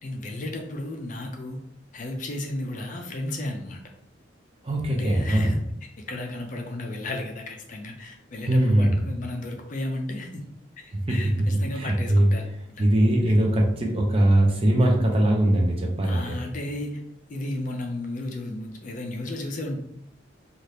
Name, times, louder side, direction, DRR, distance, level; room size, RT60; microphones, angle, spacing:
voice 1, 0.0-1.6 1.9-3.8 4.9-5.6 6.1-10.5 10.8-12.4 12.8-12.9 13.3-13.4 16.0-17.0 17.3-19.8, left 1 dB, 40° left, 3 dB, 0.4 m, -33 dB
voice 2, 4.6-5.5 8.5-8.9 11.1-11.2 11.7-12.3 12.8-16.4, right 1 dB, 30° right, 0 dB, 0.5 m, -21 dB
2.7 x 2.4 x 3.2 m, 0.73 s
head